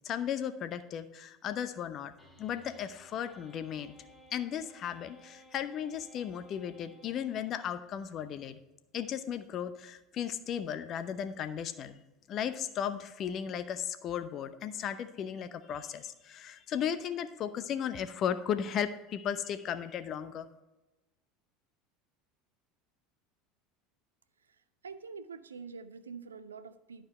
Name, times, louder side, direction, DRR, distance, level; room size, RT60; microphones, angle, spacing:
voice 1, 0.0-2.1 2.4-3.9 4.3-8.6 8.9-12.0 12.3-20.5, left 9 dB, 40° left, 11 dB, 0.7 m, -35 dB
sound 1, 2.2-8.0, equal, 15° left, 1.9 m, -59 dB
voice 2, 24.8-27.1, right 5 dB, 80° right, 13 dB, 0.4 m, -46 dB
11.5 x 5.1 x 4.3 m, 1.0 s
figure-of-eight pair, 70°, 0 cm